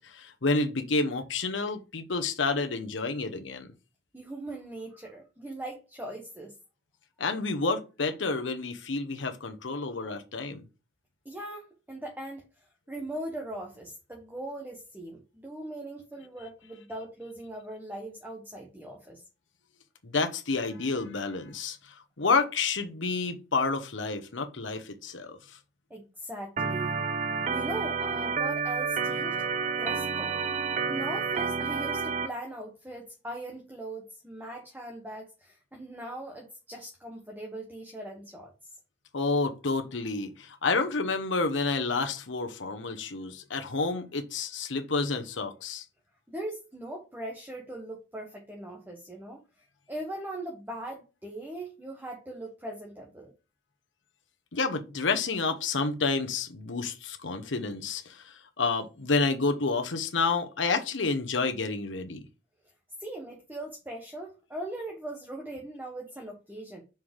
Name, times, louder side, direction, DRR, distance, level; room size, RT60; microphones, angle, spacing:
voice 1, 0.0-3.7 7.2-10.6 20.0-25.6 39.1-45.8 54.5-62.2, left 3 dB, 75° left, 1.1 m, -29 dB
voice 2, 4.1-6.5 11.2-12.4 12.9-19.2 25.9-27.0 27.5-29.5 29.8-30.4 30.9-38.5 46.3-49.4 49.9-53.3 63.0-66.8, right 1 dB, 10° right, 1.2 m, -40 dB
Organ, 26.6-32.3, right 5 dB, 40° right, 0.7 m, -30 dB
5.9 x 4.9 x 3.7 m
head